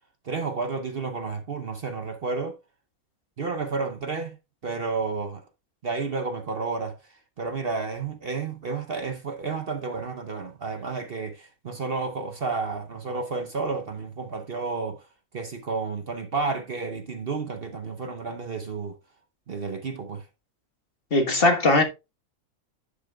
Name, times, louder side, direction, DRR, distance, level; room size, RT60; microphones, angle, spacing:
voice 1, 0.2-2.6 3.4-4.4 4.6-5.4 5.8-15.1 15.3-19.0 19.5-20.3, right 4 dB, 45° right, 1.0 m, -31 dB
voice 2, 21.1-21.8, left 2 dB, 40° left, 1.6 m, -19 dB
11.5 x 7.0 x 2.3 m
omnidirectional pair, 1.5 m